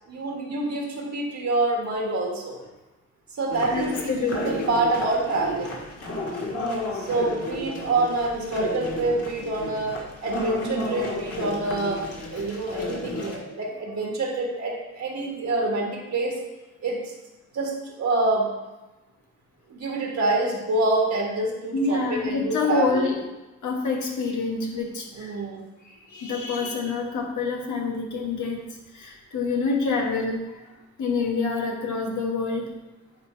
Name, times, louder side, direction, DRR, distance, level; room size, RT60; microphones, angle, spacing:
voice 1, 0.1-2.6 3.4-5.8 6.9-9.9 10.2-16.4 16.8-17.0 17.5-18.5 19.7-23.1 25.1-25.6, right 2 dB, 70° right, -1 dB, 1.6 m, -26 dB
sound 1, 3.5-13.4, left 1 dB, 55° left, 1.6 m, -32 dB
voice 2, 3.7-4.7 21.7-23.2 23.6-25.4 25.8-28.6 28.9-30.7 31.0-32.7, left 4 dB, 90° left, 1 dB, 1.3 m, -27 dB
9.7 x 3.5 x 4.4 m, 1.1 s
cardioid pair, 80°, 29 cm